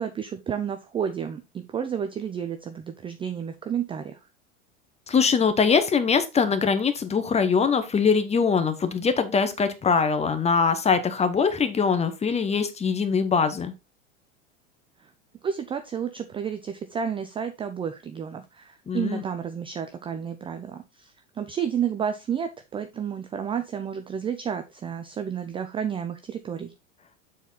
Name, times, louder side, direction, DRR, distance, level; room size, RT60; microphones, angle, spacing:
voice 1, 0.0-4.2 15.0-15.1 15.4-26.7, right 8 dB, 15° right, 8 dB, 0.4 m, -31 dB
voice 2, 5.1-13.7 18.9-19.2, left 5 dB, 15° left, 10 dB, 0.9 m, -22 dB
7.1 x 4.3 x 3.9 m, 0.28 s
figure-of-eight pair, 85°, 40 cm